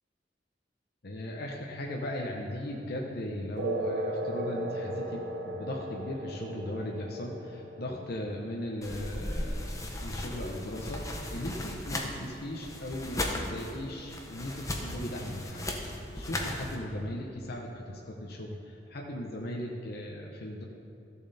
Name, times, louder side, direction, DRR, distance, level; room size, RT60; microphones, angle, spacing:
voice 1, 1.0-15.6 15.9-20.6, left 1 dB, 60° left, -1 dB, 0.9 m, -38 dB
sound 1, 3.6-10.6, right 1 dB, 90° right, 0.8 m, -37 dB
sound 2, 8.8-16.8, left 1 dB, 20° left, 0.9 m, -36 dB
14.0 x 6.9 x 4.2 m, 2.6 s
head